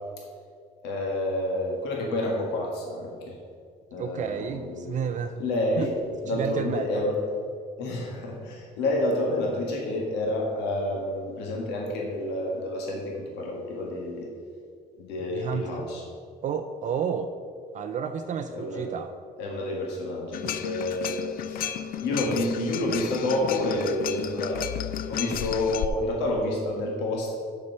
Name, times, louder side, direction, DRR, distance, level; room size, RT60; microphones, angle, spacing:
voice 1, 0.8-3.4 3.9-5.0 5.4-5.9 6.2-7.2 7.8-14.3 15.0-16.0 18.5-18.9 19.4-21.7 22.0-24.6 25.1-27.4, left 1 dB, 90° left, -1 dB, 1.5 m, -29 dB
voice 2, 4.0-5.4 5.8-5.9 6.3-7.0 15.3-15.8 16.4-17.3 17.7-19.1, right 7 dB, 45° right, 6 dB, 0.4 m, -31 dB
sound 1, 20.3-25.9, left 10 dB, 60° left, 0.4 m, -33 dB
6.7 x 5.7 x 6.7 m, 2.2 s
cardioid pair, 110°, 17 cm